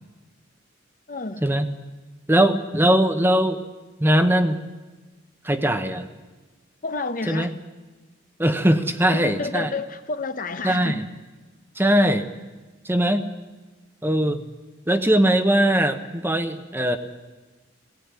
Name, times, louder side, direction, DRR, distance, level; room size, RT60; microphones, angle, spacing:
voice 1, 1.1-1.4 6.8-7.5 9.1-11.0, left 3 dB, 45° left, 10 dB, 0.9 m, -30 dB
voice 2, 2.3-3.6 4.0-4.6 5.4-6.1 7.3-7.5 8.4-9.7 10.6-11.0 11.8-12.3 12.8-13.2 14.0-14.4 14.9-17.0, right 1 dB, 10° right, 8 dB, 1.0 m, -20 dB
18.0 x 16.0 x 9.7 m, 1.2 s
head